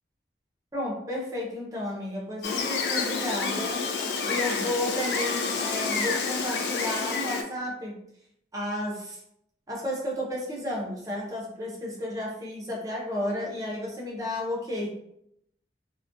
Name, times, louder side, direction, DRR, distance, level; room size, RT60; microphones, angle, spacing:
voice 1, 0.7-3.8 4.3-8.0 8.5-9.2 9.7-14.9, left 1 dB, 20° right, -3 dB, 0.5 m, -32 dB
Gull seagull, 2.4-7.4, left 4 dB, 70° left, 0.3 m, -29 dB
2.3 x 2.1 x 2.5 m, 0.78 s
head